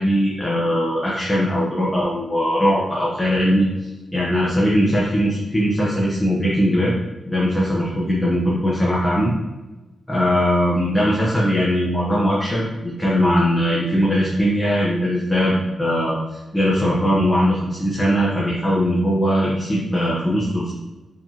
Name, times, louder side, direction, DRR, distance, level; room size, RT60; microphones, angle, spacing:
voice 1, 0.0-3.6 4.1-6.9 7.3-9.3 10.1-20.7, equal, 15° left, -6 dB, 0.9 m, -20 dB
4.9 x 3.5 x 2.9 m, 1.1 s
wide cardioid pair, 110°, 0 cm